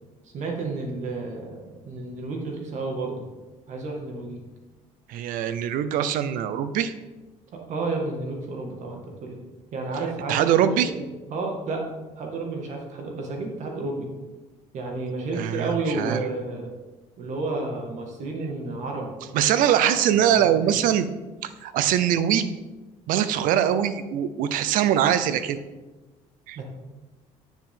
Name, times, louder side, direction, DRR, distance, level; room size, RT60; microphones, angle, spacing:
voice 1, 0.2-3.3 3.7-4.4 7.7-9.4 9.7-10.5 10.8-11.8 12.2-14.1 14.7-16.7 17.2-19.1 20.3-20.8 26.6-26.7, right 3 dB, 60° right, 1 dB, 2.0 m, -31 dB
voice 2, 5.1-6.9 10.3-10.9 15.3-16.2 19.3-21.1 21.4-22.5 23.1-25.6 26.5-26.6, right 10 dB, 80° right, 12 dB, 0.6 m, -22 dB
9.4 x 7.2 x 3.8 m, 1.2 s
cardioid pair, 105°, 14 cm